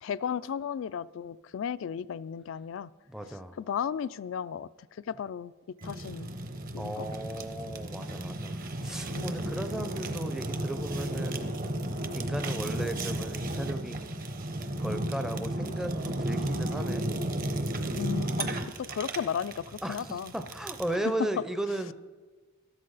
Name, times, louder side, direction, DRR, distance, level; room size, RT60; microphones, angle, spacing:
voice 1, 0.0-2.9 3.6-4.7 5.1-5.5 5.8-6.3 6.7-7.1 9.1-9.4 18.0-18.5 18.9-20.3 21.0-21.1, left 8 dB, 70° left, 19 dB, 0.3 m, -34 dB
voice 2, 3.1-3.6 6.8-11.6 12.1-14.1 14.7-17.1 19.8-21.9, right 1 dB, 5° right, 7 dB, 0.5 m, -35 dB
Fire, 5.8-21.0, right 1 dB, 45° right, 0.9 m, -34 dB
13.0 x 13.0 x 4.0 m, 1.4 s
head